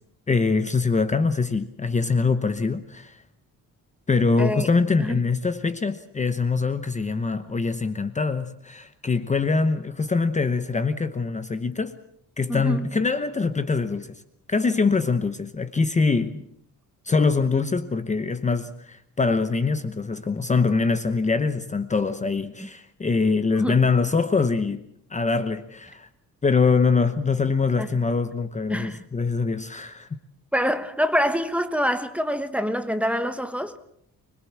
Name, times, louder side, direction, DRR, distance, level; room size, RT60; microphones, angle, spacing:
voice 1, 0.3-3.2 4.1-12.0 12.4-14.2 14.5-16.4 17.0-24.8 25.1-26.1 26.4-30.1, left 4 dB, 20° left, 0.9 m, -23 dB
voice 2, 4.4-4.7 5.0-5.1 12.5-12.8 23.6-23.8 27.8-27.9 28.7-29.0 30.5-33.8, equal, 5° right, 1.1 m, -25 dB
25.5 x 21.5 x 7.3 m
wide cardioid pair, 180°, 35 cm